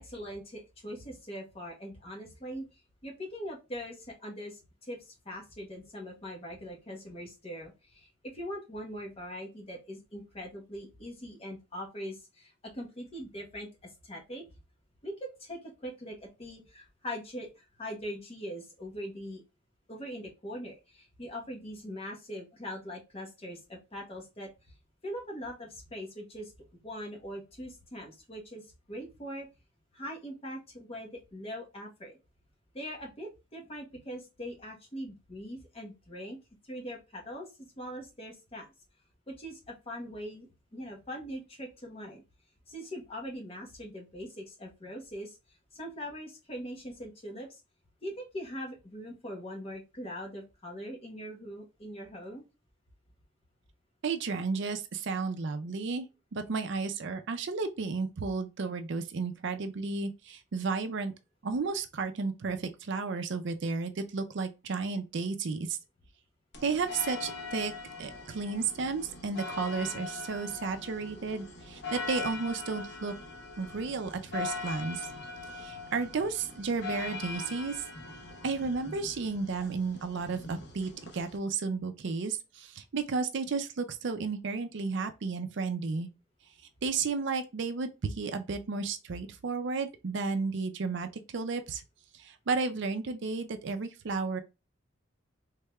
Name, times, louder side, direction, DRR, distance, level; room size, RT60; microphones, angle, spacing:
voice 1, 0.0-2.6 3.0-14.4 15.0-19.4 19.9-24.5 25.0-26.5 26.8-29.5 29.9-32.2 32.7-36.4 36.6-37.5 37.8-38.7 39.3-42.2 42.7-45.4 45.7-47.6 48.0-52.4, equal, 30° left, 1.0 m, -42 dB
voice 2, 54.0-56.1 56.3-61.1 61.4-65.8 66.6-67.7 68.0-73.1 73.6-75.1 75.6-77.8 78.4-86.1 86.8-91.8 92.1-94.4, right 4 dB, 60° right, 0.4 m, -33 dB
sound 1, 66.5-81.4, left 4 dB, 55° left, 0.9 m, -41 dB
3.6 x 3.3 x 2.2 m
head